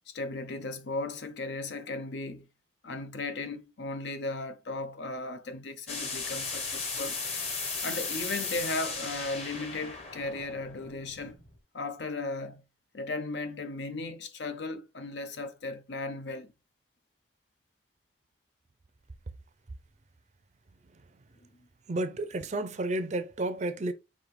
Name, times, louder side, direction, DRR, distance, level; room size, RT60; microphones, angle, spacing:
voice 1, 0.1-2.5 2.8-7.2 7.8-11.4 11.7-12.7 12.9-16.5, left 2 dB, 65° left, 0.6 m, -36 dB
sound 1, 5.9-11.6, left 4 dB, 35° left, 1.1 m, -36 dB
voice 2, 21.9-23.9, right 2 dB, 40° right, 0.5 m, -31 dB
5.0 x 2.8 x 3.2 m
head